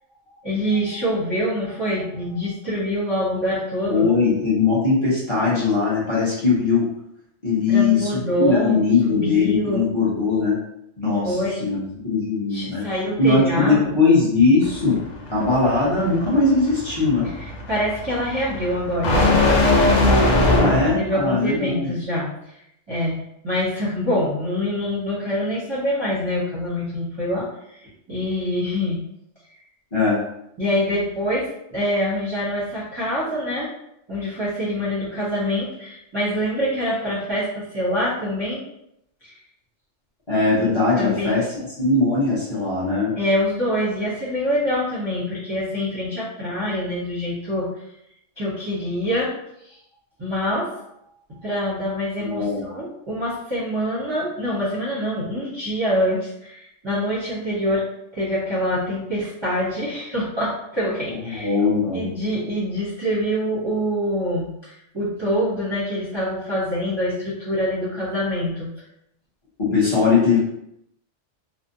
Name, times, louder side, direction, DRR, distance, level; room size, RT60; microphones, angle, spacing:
voice 1, 0.3-4.1 7.7-9.9 11.3-11.7 12.5-13.9 17.4-19.6 20.9-22.5 22.9-29.0 30.6-33.7 34.1-38.6 39.2-39.3 40.9-41.4 43.2-47.7 48.4-49.3 49.6-49.8 50.2-50.8 51.4-57.9 58.1-61.5 61.9-64.5 64.9-68.7, equal, 30° right, -9 dB, 0.6 m, -25 dB
voice 2, 3.9-6.8 7.4-10.6 11.0-12.8 13.2-15.0 15.3-17.3 20.4-21.9 29.9-30.2 40.3-43.1 52.2-52.7 61.3-62.0 69.6-70.4, left 4 dB, 30° left, -8 dB, 0.7 m, -20 dB
sound 1, 14.6-21.1, left 2 dB, 90° left, 1.0 m, -21 dB
2.5 x 2.0 x 2.6 m, 0.78 s
omnidirectional pair, 1.3 m